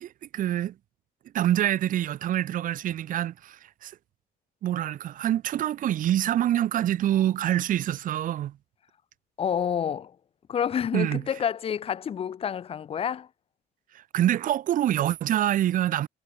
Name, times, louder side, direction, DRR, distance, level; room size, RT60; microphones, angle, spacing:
voice 1, 0.0-0.7 1.3-4.0 4.6-8.6 10.9-11.2 13.9-16.1, right 12 dB, 50° right, 0.6 m, -26 dB
voice 2, 9.4-10.2 10.5-13.3, left 8 dB, 35° left, 0.6 m, -28 dB
cardioid pair, 110°, 17 cm